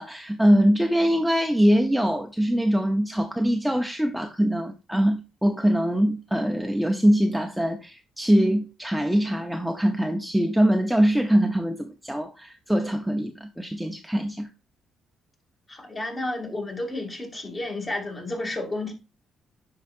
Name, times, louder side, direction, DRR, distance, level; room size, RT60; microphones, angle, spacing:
voice 1, 0.0-14.5, equal, ahead, 0.7 m, -23 dB
voice 2, 15.7-18.9, left 2 dB, 30° left, 2.5 m, -31 dB
10.0 x 4.7 x 2.6 m
cardioid pair, 90°, 0 cm